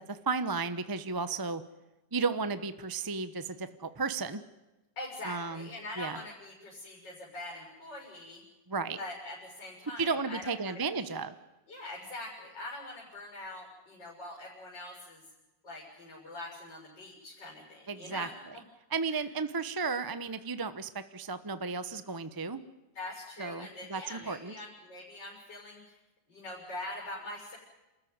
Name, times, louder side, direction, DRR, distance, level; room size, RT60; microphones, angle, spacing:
voice 1, 0.1-1.6 2.1-4.4 5.2-5.7 6.0-6.2 8.7-9.0 10.0-11.3 17.9-18.5 18.9-22.6 23.4-24.5, right 4 dB, 20° right, 12 dB, 0.7 m, -34 dB
voice 2, 5.0-8.4 9.0-11.1 11.7-15.2 15.6-18.3 19.1-19.2 22.9-26.0 26.3-27.6, left 2 dB, 75° left, -3 dB, 7.3 m, -43 dB
28.5 x 14.0 x 9.6 m, 1.0 s
omnidirectional pair, 2.0 m